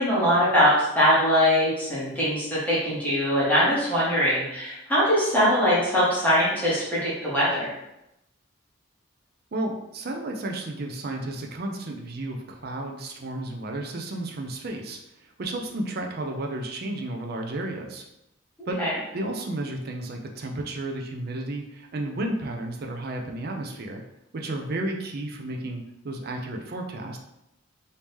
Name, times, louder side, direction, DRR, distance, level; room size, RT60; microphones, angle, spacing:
voice 1, 0.0-7.7 18.8-18.9, equal, 10° left, -9 dB, 1.1 m, -22 dB
voice 2, 9.5-15.0 15.4-18.0 18.7-18.8 19.1-24.0 24.3-27.2, right 2 dB, 50° right, 2 dB, 0.5 m, -32 dB
3.1 x 2.7 x 3.5 m, 0.88 s
head